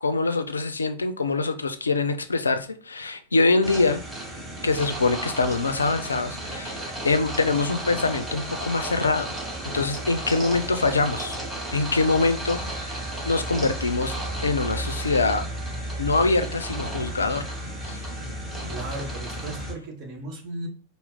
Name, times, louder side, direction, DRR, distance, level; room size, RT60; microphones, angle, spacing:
voice 1, 0.0-4.0 4.6-6.8 7.0-9.3 9.6-11.4 11.7-14.2 14.4-15.4 16.0-17.5 17.8-18.0, left 3 dB, 75° left, 0.4 m, -24 dB
sound 1, 3.6-19.7, right 1 dB, 10° right, 1.1 m, -33 dB
voice 2, 18.7-20.7, right 2 dB, 35° right, 1.0 m, -36 dB
4.3 x 2.0 x 3.7 m
figure-of-eight pair, 90°, 0 cm